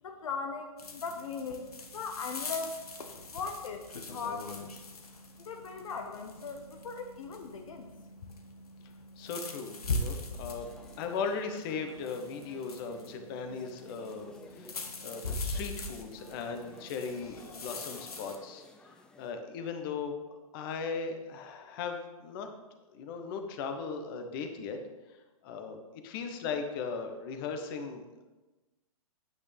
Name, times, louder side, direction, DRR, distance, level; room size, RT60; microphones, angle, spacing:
voice 1, 0.0-2.8 3.3-3.9 4.1-4.5 5.4-7.9, left 5 dB, 65° left, 5 dB, 0.9 m, -39 dB
sound 1, 0.8-18.4, left 2 dB, 85° left, 1.2 m, -41 dB
voice 2, 9.2-14.7 15.0-18.6 19.2-20.2 20.5-22.5 22.9-24.8 25.4-25.8 26.0-28.2, left 5 dB, 40° left, 6 dB, 1.1 m, -38 dB
sound 2, 10.6-19.3, left 2 dB, 5° left, 0.3 m, -55 dB
8.8 x 8.5 x 3.4 m, 1.1 s
hypercardioid pair, 130°, 19 cm